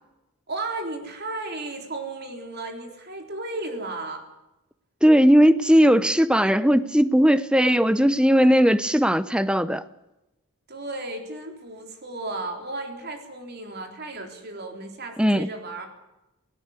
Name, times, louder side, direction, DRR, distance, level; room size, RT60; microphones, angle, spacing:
voice 1, 0.5-4.2 10.7-15.9, right 2 dB, 45° right, 3.7 m, -34 dB
voice 2, 5.0-9.8 15.2-15.5, equal, 5° right, 0.7 m, -18 dB
17.5 x 17.0 x 9.7 m
head